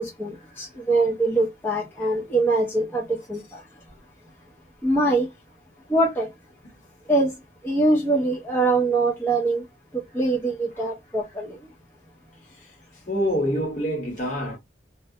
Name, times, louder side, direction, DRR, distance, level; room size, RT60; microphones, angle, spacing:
voice 1, 0.0-3.4 4.8-5.3 5.9-6.3 7.1-7.3 7.6-9.6 10.1-11.6, right 2 dB, 10° left, 0.5 m, -23 dB
voice 2, 13.1-14.6, equal, 45° left, 1.2 m, -25 dB
2.3 x 2.1 x 2.6 m
head